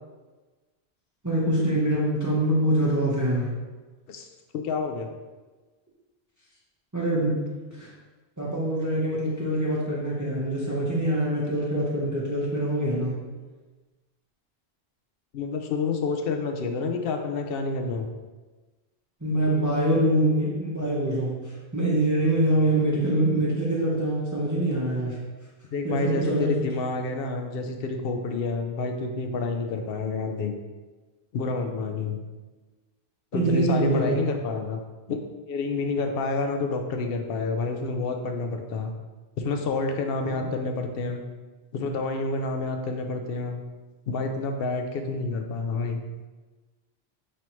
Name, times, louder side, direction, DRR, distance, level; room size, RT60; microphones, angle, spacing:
voice 1, 1.2-3.5 6.9-7.4 7.8-7.9 8.4-13.2 19.2-21.4 21.7-25.2 25.8-26.5 33.3-34.2, right 1 dB, 20° right, -6 dB, 0.7 m, -24 dB
voice 2, 4.5-5.1 15.3-18.1 25.7-30.5 31.3-32.2 33.3-34.8 35.1-35.2 35.5-38.9 39.4-41.2 41.7-43.6 44.1-46.0, left 3 dB, 65° left, 4 dB, 0.7 m, -29 dB
5.3 x 3.1 x 3.0 m, 1.3 s
omnidirectional pair, 1.1 m